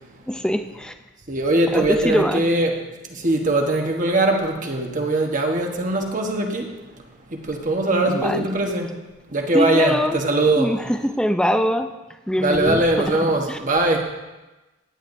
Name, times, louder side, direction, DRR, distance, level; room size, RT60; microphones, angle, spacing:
voice 1, 0.3-0.9 1.7-2.5 8.0-8.6 9.5-10.2 10.6-11.9 12.3-13.6, equal, 5° left, 7 dB, 0.5 m, -23 dB
voice 2, 1.3-2.7 3.1-6.7 7.3-8.9 9.3-10.7 12.4-14.0, right 2 dB, 40° right, 2 dB, 1.3 m, -21 dB
16.0 x 10.0 x 2.7 m, 1.1 s
head